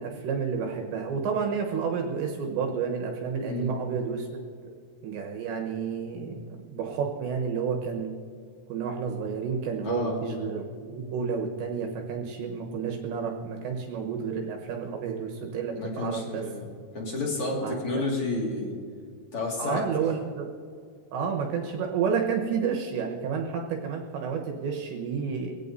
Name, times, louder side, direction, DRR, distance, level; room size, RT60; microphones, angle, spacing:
voice 1, 0.0-4.3 5.0-6.3 6.7-8.1 8.7-16.4 17.6-17.8 19.6-20.5 21.1-25.6, right 6 dB, 75° right, 1 dB, 3.0 m, -30 dB
voice 2, 3.4-3.7 9.8-10.2 15.7-16.6 16.9-18.8 19.3-19.9, left 2 dB, 50° left, -2 dB, 1.6 m, -30 dB
23.0 x 17.0 x 2.7 m, 2.2 s
omnidirectional pair, 5.9 m